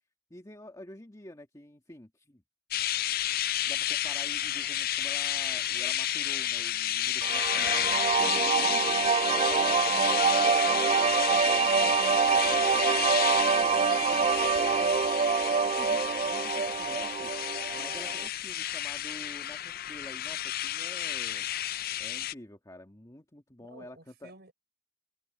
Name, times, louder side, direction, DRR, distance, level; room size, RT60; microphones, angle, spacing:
voice 1, 0.3-2.4 3.7-9.0 9.3-14.9 15.6-17.3 17.7-21.5 22.0-24.3, left 1 dB, 20° left, 1.9 m, -48 dB
sound 1, 2.7-22.3, left 12 dB, 50° left, 0.5 m, -31 dB
sound 2, 7.2-18.3, right 6 dB, 35° right, 0.3 m, -26 dB
voice 2, 8.2-8.8 23.6-24.5, right 2 dB, 60° right, 5.0 m, -52 dB
head